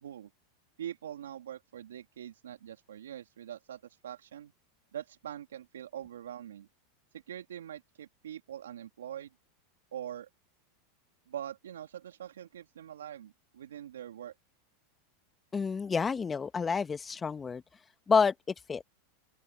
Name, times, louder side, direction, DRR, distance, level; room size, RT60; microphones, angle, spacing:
voice 1, 0.8-4.5 4.9-6.7 7.3-9.3 9.9-10.3 11.3-14.3, right 10 dB, 80° right, 2.6 m, -43 dB
voice 2, 15.5-17.6 18.1-18.3 18.7-18.8, left 5 dB, 20° left, 1.6 m, -28 dB
open air
hypercardioid pair, 95°, 0 cm